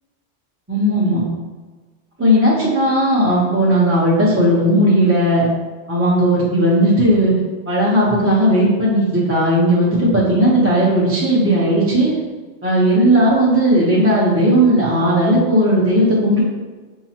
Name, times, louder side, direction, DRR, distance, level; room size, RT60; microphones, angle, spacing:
voice 1, 0.7-1.2 2.2-5.5 5.9-7.4 7.7-12.1 12.6-16.4, equal, 15° right, -7 dB, 0.6 m, -15 dB
5.6 x 2.1 x 2.8 m, 1.4 s
omnidirectional pair, 1.2 m